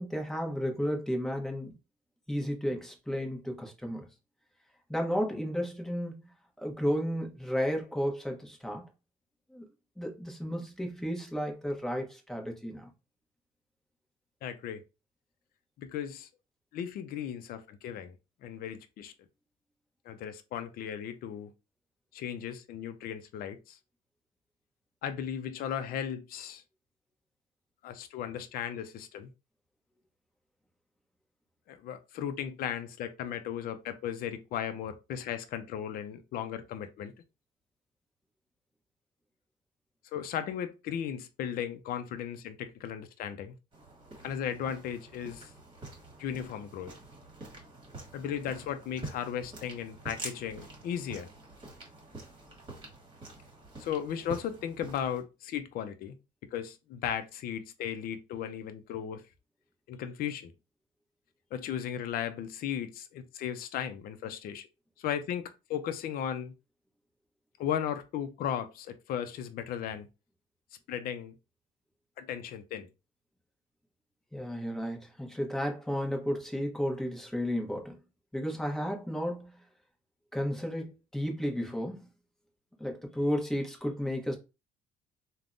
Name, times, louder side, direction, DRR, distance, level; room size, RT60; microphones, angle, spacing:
voice 1, 0.0-1.7 2.3-4.1 4.9-6.1 6.6-8.8 9.5-9.6 10.0-12.9 74.3-78.0 78.3-79.6 80.3-82.1 82.8-84.4, equal, 5° left, 0.8 m, -33 dB
voice 2, 14.4-14.8 15.8-16.3 16.7-18.1 18.4-19.1 20.1-21.5 22.1-23.8 25.0-26.6 27.8-29.3 31.7-37.1 40.1-43.5 44.2-45.5 46.2-46.9 48.1-51.3 53.8-56.2 56.5-59.2 59.9-60.5 61.5-64.7 65.0-66.5 67.6-70.1 70.9-71.4 72.2-72.9, left 9 dB, 60° left, 0.4 m, -36 dB
sound 1, 43.7-55.2, right 2 dB, 30° right, 1.3 m, -47 dB
3.4 x 2.1 x 2.5 m
cardioid pair, 110°, 17 cm